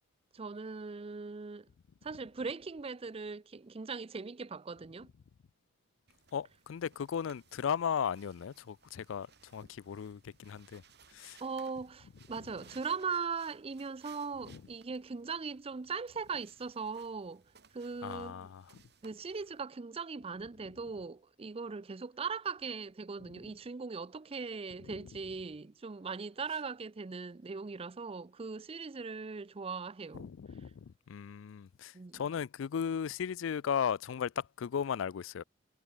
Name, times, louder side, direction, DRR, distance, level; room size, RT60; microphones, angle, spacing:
voice 1, 0.3-1.7 2.0-5.1 11.4-17.4 17.7-18.5 19.0-30.3 31.9-32.2, right 5 dB, 30° right, 0.5 m, -39 dB
sound 1, 6.1-19.6, right 6 dB, 60° right, 6.7 m, -63 dB
voice 2, 6.3-9.3 9.5-10.8 11.1-11.4 14.5-14.6 18.0-18.6 24.9-25.0 30.1-35.4, left 7 dB, 85° left, 0.4 m, -36 dB
head